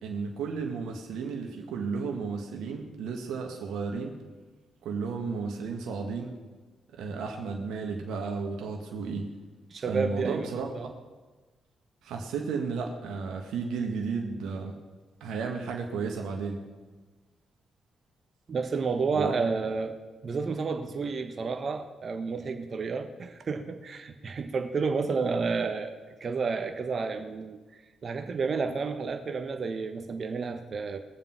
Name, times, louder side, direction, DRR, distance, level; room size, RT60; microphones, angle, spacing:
voice 1, 0.0-4.1 4.8-6.3 6.9-9.3 9.9-10.9 12.0-14.8 15.2-16.6 19.1-19.3, right 5 dB, 75° right, 2 dB, 1.6 m, -33 dB
voice 2, 9.7-10.5 10.7-10.9 18.5-20.0 20.2-27.6 28.0-31.0, right 4 dB, 50° right, 6 dB, 1.3 m, -31 dB
20.5 x 7.4 x 5.9 m, 1.3 s
hypercardioid pair, 45°, 0 cm